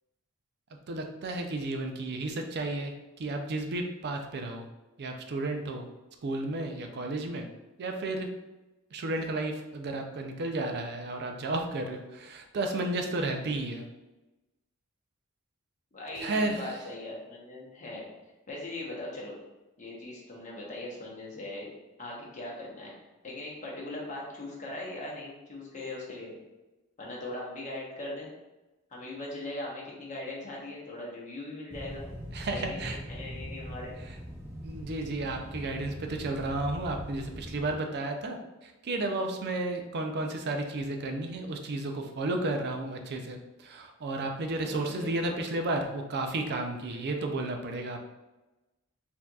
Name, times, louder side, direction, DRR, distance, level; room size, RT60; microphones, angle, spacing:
voice 1, 0.9-4.7 5.0-5.9 6.2-7.5 7.8-8.3 8.9-13.8 16.2-16.7 32.3-33.0 34.6-48.0, right 2 dB, 50° right, 4 dB, 0.4 m, -33 dB
voice 2, 15.9-18.1 18.5-19.4 19.8-21.7 22.0-22.9 23.2-26.4 27.0-28.3 28.9-32.0 32.5-33.9 44.6-45.4 46.9-47.1, left 2 dB, 35° left, -4 dB, 1.0 m, -40 dB
sound 1, 31.7-37.7, equal, 10° right, 0.7 m, -41 dB
4.4 x 2.8 x 2.3 m, 1.0 s
head